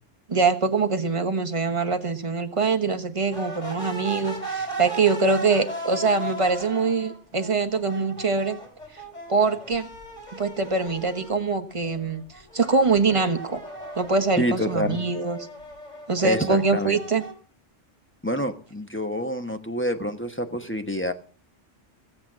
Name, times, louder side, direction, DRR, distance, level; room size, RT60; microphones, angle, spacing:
voice 1, 0.3-8.6 9.3-9.9 10.3-12.2 12.5-13.6 14.0-15.4 16.1-17.2, right 4 dB, 25° right, 6 dB, 1.2 m, -23 dB
sound 1, 3.3-11.4 11.8-17.3, right 1 dB, 35° left, 4.0 m, -37 dB
voice 2, 14.4-15.0 16.2-17.0 18.2-21.1, equal, 10° left, 7 dB, 1.0 m, -27 dB
17.0 x 7.8 x 7.4 m, 0.43 s
omnidirectional pair, 1.3 m